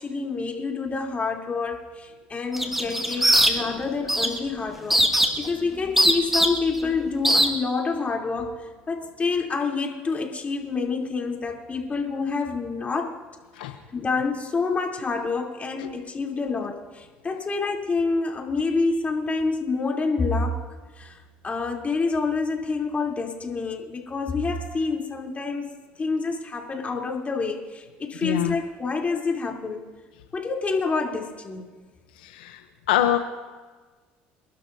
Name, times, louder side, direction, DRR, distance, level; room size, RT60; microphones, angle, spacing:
voice 1, 0.0-8.6 8.9-13.2 13.9-20.6 21.0-21.2 21.4-25.7 26.0-29.8 30.3-31.6, left 4 dB, 30° left, 0 dB, 3.6 m, -27 dB
sound 1, 2.5-3.8 4.1-4.4 4.9-5.5 6.0-6.8 7.2-7.5, equal, 5° right, 2.0 m, -20 dB
voice 2, 28.2-28.5 32.2-32.6 32.9-33.2, left 12 dB, 85° left, 7 dB, 0.9 m, -24 dB
30.0 x 12.5 x 2.8 m, 1.4 s
hypercardioid pair, 70°, 5 cm